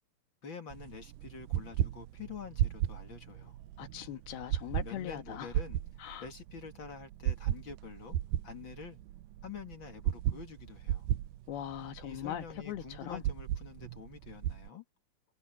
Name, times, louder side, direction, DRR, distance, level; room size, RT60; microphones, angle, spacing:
voice 1, 0.4-3.6 4.8-5.8 6.2-8.2 8.4-9.0 9.4-11.1 12.0-14.8, left 6 dB, 40° left, 2.1 m, -47 dB
sound 1, 0.7-14.7, right 12 dB, 85° right, 1.9 m, -36 dB
voice 2, 3.8-5.5 6.0-6.3 11.5-13.2, left 11 dB, 75° left, 3.3 m, -40 dB
omnidirectional pair, 4.6 m